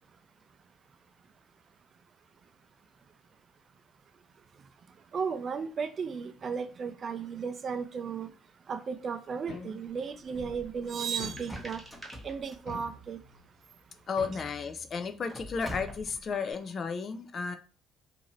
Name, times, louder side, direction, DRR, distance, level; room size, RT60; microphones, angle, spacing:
voice 1, 5.1-8.4 8.7-11.9 12.2-13.2, right 6 dB, 45° right, 0.3 m, -35 dB
sound 1, 9.5-10.2 11.2-12.0 12.7-13.5 14.2-15.2, left 4 dB, 65° left, 0.7 m, -46 dB
sound 2, 10.3-10.9 11.2-13.4 14.2-14.3 14.5-14.6 15.1-16.3, equal, 10° left, 0.9 m, -44 dB
sound 3, 11.3-12.3 13.3-13.4 15.3-16.5, right 1 dB, 20° right, 1.0 m, -50 dB
voice 2, 14.1-17.6, left 5 dB, 45° left, 0.3 m, -33 dB
2.6 x 2.5 x 2.9 m
cardioid pair, 90°, 0 cm